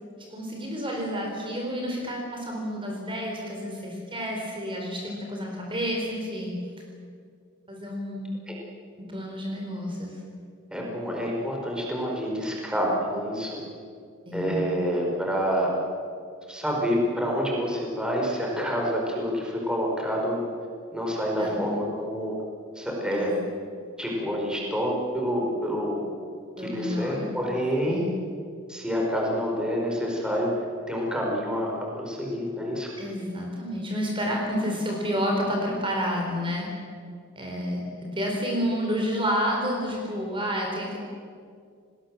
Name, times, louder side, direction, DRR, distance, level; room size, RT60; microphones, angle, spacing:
voice 1, 0.3-6.5 7.7-8.3 9.1-10.1 14.3-14.6 21.4-21.7 23.2-23.3 26.6-27.3 27.9-28.1 33.0-36.7 37.4-37.8 38.1-41.0, equal, 25° right, 0 dB, 4.6 m, -30 dB
voice 2, 10.7-13.6 14.3-15.7 16.5-20.4 20.9-22.3 22.7-23.3 24.0-26.0 26.6-28.0 28.7-32.9, equal, 5° right, -2 dB, 5.0 m, -28 dB
29.5 x 20.5 x 7.6 m, 2.2 s
head